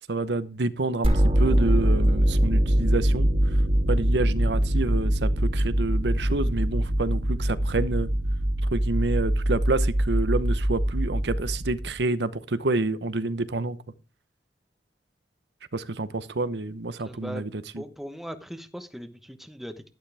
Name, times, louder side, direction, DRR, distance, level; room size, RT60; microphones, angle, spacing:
voice 1, 0.1-3.3 3.9-8.1 8.7-13.8 15.7-17.5, right 2 dB, 80° right, 0.9 m, -28 dB
sound 1, 1.0-12.0, right 1 dB, 35° right, 2.4 m, -23 dB
voice 2, 17.0-17.5 17.7-19.9, equal, ahead, 1.0 m, -39 dB
11.5 x 11.5 x 3.4 m
head